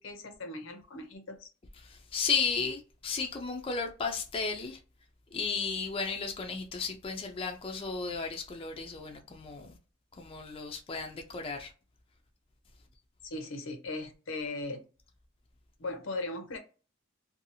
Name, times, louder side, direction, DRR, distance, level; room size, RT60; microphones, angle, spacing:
voice 1, 0.0-1.5 13.2-14.8 15.8-16.6, left 2 dB, 85° left, 0.7 m, -38 dB
voice 2, 1.8-4.8 5.3-9.8 10.1-11.7, left 5 dB, 30° left, 0.4 m, -34 dB
2.7 x 2.3 x 2.7 m
head